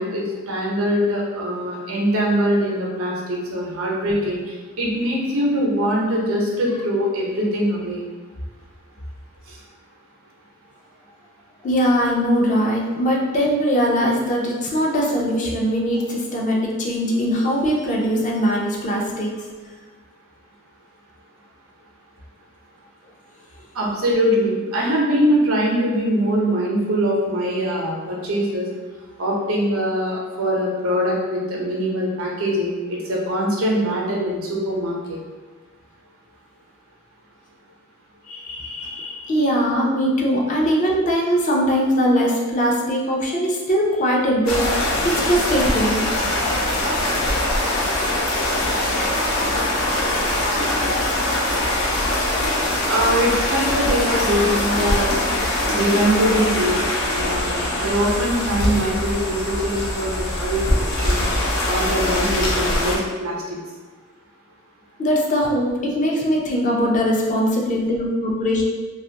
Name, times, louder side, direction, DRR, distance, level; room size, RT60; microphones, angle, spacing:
voice 1, 0.0-8.0 9.5-9.6 23.7-28.7 29.2-35.2 52.9-55.2 55.7-61.3 61.7-63.6, equal, 90° right, -3 dB, 0.7 m, -22 dB
voice 2, 11.6-19.4 38.3-46.5 65.0-68.7, equal, 35° left, -2 dB, 0.4 m, -21 dB
sound 1, 44.5-63.0, left 1 dB, 85° left, 0.6 m, -22 dB
2.4 x 2.3 x 2.8 m, 1.3 s
head